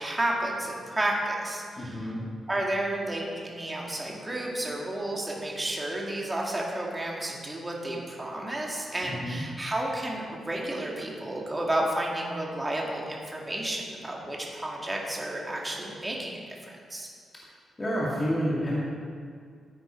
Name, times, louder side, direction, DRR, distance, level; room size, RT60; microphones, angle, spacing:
voice 1, 0.0-2.1 2.5-17.1, right 1 dB, 15° right, -2 dB, 2.1 m, -31 dB
voice 2, 1.8-2.3 9.0-9.4 17.8-18.8, equal, 20° left, -6 dB, 2.1 m, -29 dB
14.0 x 9.6 x 4.5 m, 2.1 s
wide cardioid pair, 140°, 0 cm